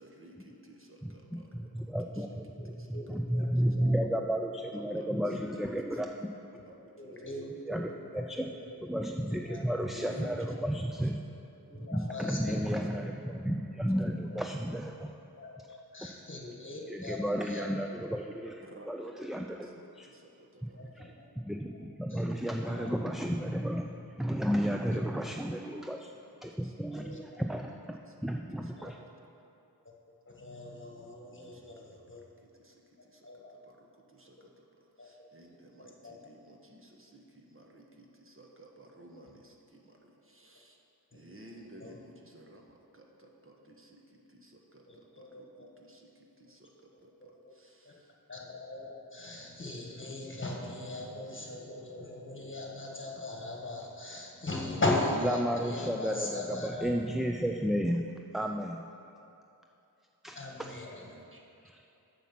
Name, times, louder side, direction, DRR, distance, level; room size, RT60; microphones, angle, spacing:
voice 1, 0.0-2.3 2.6-2.9 3.6-3.7 4.7-5.4 5.9-6.1 6.6-7.3 9.9-10.6 11.8-12.1 18.6-20.8 24.9-25.0 25.3-25.4 26.5-26.8 28.1-28.2 28.6-28.7 29.1-29.2 31.4-40.8 41.1-48.1 61.0-61.4, right 1 dB, 35° right, 0 dB, 1.1 m, -55 dB
voice 2, 1.0-6.1 7.7-8.5 8.8-11.2 11.7-15.1 16.9-20.1 20.6-20.7 21.0-21.1 21.5-23.9 24.2-26.1 26.4-29.0 55.2-58.0 58.3-58.8 60.2-60.4 61.6-61.8, equal, ahead, 3 dB, 0.3 m, -33 dB
voice 3, 2.9-4.2 4.6-4.7 7.0-7.5 7.9-8.5 9.3-9.6 9.9-10.2 11.7-12.6 13.9-14.0 14.3-14.4 15.4-17.7 20.7-21.3 21.7-21.8 22.1-22.9 24.9-25.0 27.0-27.2 28.8-29.0 29.8-29.9 30.2-32.2 33.2-33.5 35.0-35.1 35.8-36.2 39.2-39.3 41.1-41.2 41.8-41.9 44.9-45.7 46.9-47.5 47.8-47.9 48.3-56.9 60.3-61.1, left 2 dB, 30° left, -1 dB, 1.5 m, -39 dB
7.2 x 7.1 x 5.9 m, 2.8 s
wide cardioid pair, 60°, 39 cm